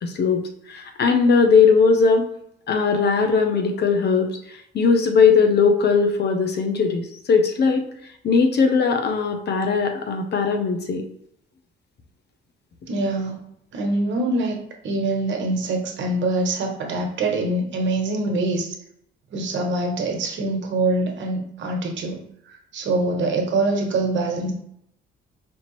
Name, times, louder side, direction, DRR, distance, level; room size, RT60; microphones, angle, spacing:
voice 1, 0.0-2.3 2.7-7.9 8.2-11.0, left 5 dB, 55° left, 5 dB, 0.7 m, -19 dB
voice 2, 12.9-13.4 13.7-18.8 19.3-24.5, right 2 dB, 70° right, 2 dB, 1.1 m, -24 dB
4.4 x 2.7 x 3.1 m, 0.72 s
cardioid pair, 90°, 20 cm